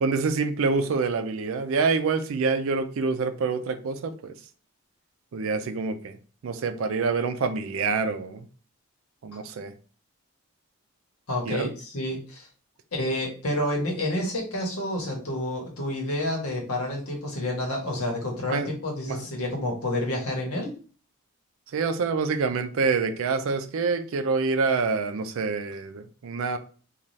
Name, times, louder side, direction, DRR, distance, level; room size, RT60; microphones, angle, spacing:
voice 1, 0.0-4.3 5.3-6.2 6.4-8.5 9.2-9.7 11.5-11.7 18.5-18.7 19.1-19.3 21.7-26.6, right 4 dB, 70° right, 8 dB, 0.4 m, -26 dB
voice 2, 11.3-12.5 12.9-20.7, left 1 dB, 80° left, 0 dB, 1.1 m, -29 dB
2.6 x 2.3 x 3.1 m, 0.39 s
head